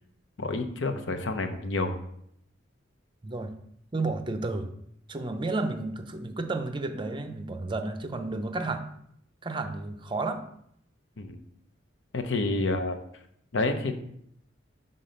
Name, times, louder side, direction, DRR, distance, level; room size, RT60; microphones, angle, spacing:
voice 1, 0.4-2.0 11.2-11.4 12.1-13.0 13.5-13.9, left 2 dB, 75° left, 7 dB, 0.8 m, -28 dB
voice 2, 3.2-3.5 3.9-4.7 5.1-8.8 9.4-10.4, right 2 dB, 25° right, 8 dB, 0.5 m, -32 dB
5.9 x 3.8 x 5.2 m, 0.72 s
head